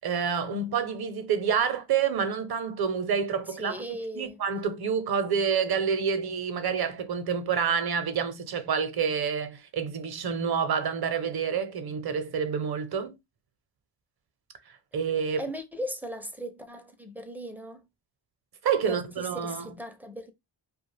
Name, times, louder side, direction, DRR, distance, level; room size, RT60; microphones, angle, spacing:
voice 1, 0.0-3.8 4.1-13.1 14.9-15.4 18.6-19.7, right 6 dB, 50° right, 0.7 m, -28 dB
voice 2, 3.5-4.4 15.4-17.9 18.8-20.3, equal, 5° right, 0.4 m, -38 dB
2.4 x 2.2 x 3.2 m
cardioid pair, 75°, 49 cm